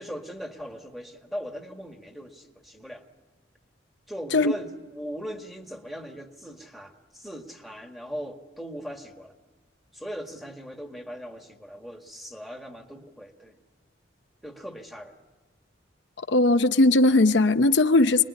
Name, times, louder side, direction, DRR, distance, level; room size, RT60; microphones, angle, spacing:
voice 1, 0.0-3.0 4.1-9.3 9.9-13.6 14.4-15.2, equal, ahead, 1.8 m, -39 dB
voice 2, 16.2-18.2, left 2 dB, 65° left, 0.7 m, -19 dB
26.0 x 21.0 x 9.8 m
head